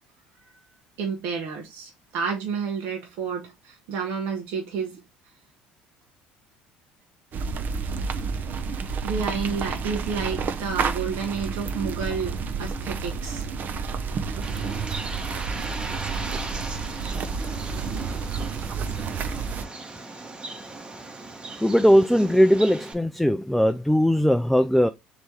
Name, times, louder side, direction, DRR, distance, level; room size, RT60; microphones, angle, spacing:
voice 1, 1.0-5.0 8.0-8.1 9.0-13.5, right 6 dB, 70° right, 1.1 m, -30 dB
sound 1, 7.3-19.7, right 5 dB, 50° right, 0.7 m, -30 dB
Bird, 14.4-22.9, right 2 dB, 25° right, 1.0 m, -38 dB
voice 2, 18.9-19.3 21.0-21.1 21.6-24.9, equal, 5° left, 0.3 m, -20 dB
3.3 x 3.0 x 4.2 m
hypercardioid pair, 75°, 4 cm